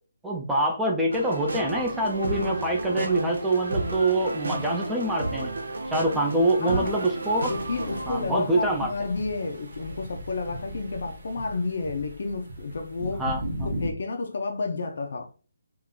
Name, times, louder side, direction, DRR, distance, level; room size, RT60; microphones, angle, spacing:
voice 1, 0.2-5.5 5.9-7.5 8.1-8.9 13.2-13.7, right 1 dB, 5° right, 0.4 m, -25 dB
sound 1, 1.1-8.2, right 2 dB, 90° right, 1.3 m, -32 dB
sound 2, 1.7-13.9, equal, 40° right, 1.5 m, -40 dB
voice 2, 6.6-6.9 7.5-13.2 13.6-15.3, left 3 dB, 45° left, 0.6 m, -31 dB
3.7 x 2.4 x 4.5 m
hypercardioid pair, 180°, 0 cm